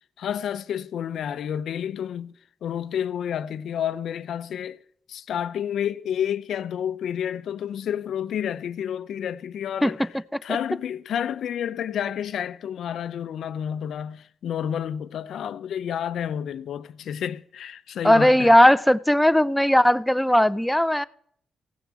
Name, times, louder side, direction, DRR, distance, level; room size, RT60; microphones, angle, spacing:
voice 1, 0.2-2.3 2.6-4.8 5.1-10.1 10.4-18.5, left 9 dB, 75° left, 0.6 m, -30 dB
voice 2, 18.0-21.0, equal, 5° left, 0.6 m, -18 dB
16.0 x 6.8 x 7.4 m
supercardioid pair, 50°, 0 cm